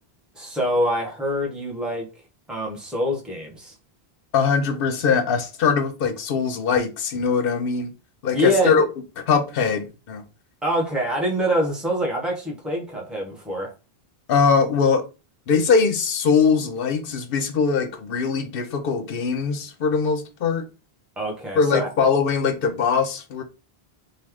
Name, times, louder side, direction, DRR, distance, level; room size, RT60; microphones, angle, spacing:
voice 1, 0.3-2.1 2.5-3.7 8.3-8.9 10.6-13.7 21.2-21.9, equal, ahead, 0.8 m, -25 dB
voice 2, 4.3-7.9 8.2-8.9 9.3-10.2 14.3-15.0 15.5-20.6 21.6-23.4, left 5 dB, 70° left, 0.8 m, -21 dB
3.0 x 2.3 x 3.5 m
omnidirectional pair, 1.0 m